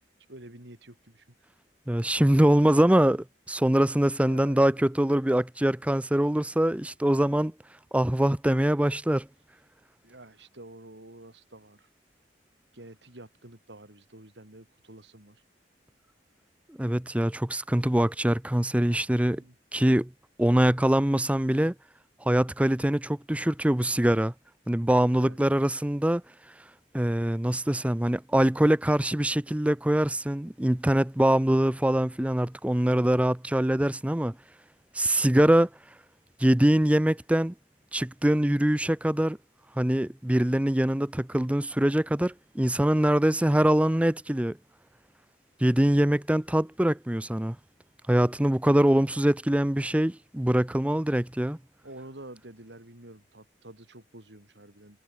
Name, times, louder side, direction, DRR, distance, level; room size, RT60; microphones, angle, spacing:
voice 1, 0.3-1.5 4.3-4.9 10.0-11.9 12.7-15.4 19.1-20.0 25.2-25.6 51.8-55.0, right 1 dB, 85° right, 4.3 m, -49 dB
voice 2, 1.9-7.5 7.9-9.3 16.8-19.4 19.7-20.0 20.4-21.7 22.2-24.3 24.7-26.2 26.9-34.3 34.9-35.7 36.4-37.5 37.9-39.4 39.8-44.6 45.6-47.6 48.1-51.6, right 1 dB, 10° right, 0.6 m, -23 dB
head